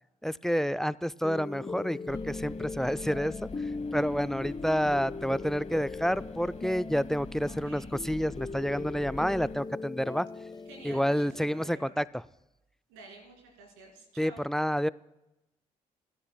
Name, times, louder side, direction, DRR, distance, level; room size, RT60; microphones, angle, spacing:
voice 1, 0.2-3.5 3.9-10.3 10.8-12.0 14.2-14.9, equal, ahead, 18 dB, 0.3 m, -29 dB
sound 1, 1.2-11.7, left 3 dB, 20° left, 0.7 m, -39 dB
sound 2, 2.1-9.6, left 4 dB, 40° left, 1.0 m, -47 dB
voice 2, 7.4-7.9 10.6-12.0 12.9-14.5, right 2 dB, 80° right, 1 dB, 2.6 m, -50 dB
21.0 x 13.0 x 2.2 m, 0.97 s
hypercardioid pair, 40°, 18 cm